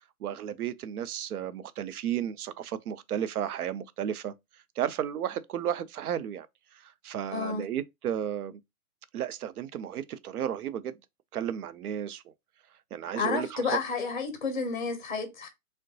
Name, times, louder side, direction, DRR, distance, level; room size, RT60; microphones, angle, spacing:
voice 1, 0.2-4.3 4.8-6.5 6.7-8.6 9.1-11.0 11.3-12.3 12.9-13.8, right 10 dB, 80° right, 0.6 m, -33 dB
voice 2, 7.3-7.6 13.2-15.5, left 4 dB, 35° left, 0.5 m, -31 dB
3.6 x 2.1 x 2.6 m
hypercardioid pair, 180°, 44 cm